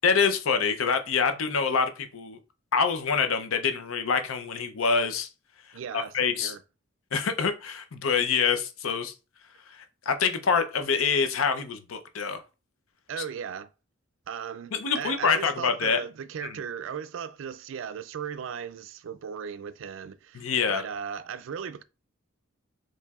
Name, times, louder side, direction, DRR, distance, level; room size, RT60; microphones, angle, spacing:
voice 1, 0.0-2.4 2.7-5.3 5.9-6.5 7.1-9.1 9.7-12.4 14.7-16.0 16.4-16.5 20.3-20.8, left 5 dB, 85° left, 0.6 m, -26 dB
voice 2, 5.7-6.6 13.1-13.7 14.3-21.8, right 7 dB, 65° right, 0.3 m, -37 dB
4.5 x 3.1 x 2.3 m
head